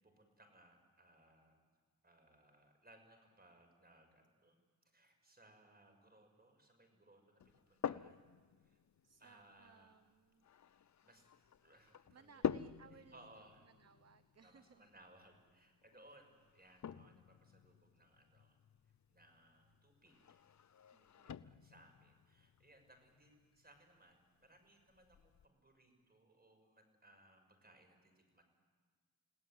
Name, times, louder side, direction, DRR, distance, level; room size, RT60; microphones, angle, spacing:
voice 1, 0.0-1.6 2.0-4.6 4.9-8.3 8.6-8.8 9.2-9.9 10.7-11.3 11.6-12.4 12.9-13.6 14.4-20.5 21.2-28.4, right 1 dB, 30° right, 5 dB, 6.4 m, -66 dB
sound 1, 7.4-25.5, left 8 dB, 55° left, 0.7 m, -49 dB
voice 2, 9.0-10.4 12.1-14.9 20.9-21.7, right 5 dB, 50° right, 11 dB, 1.0 m, -64 dB
29.0 x 18.0 x 9.2 m, 1.5 s
cardioid pair, 70°, 33 cm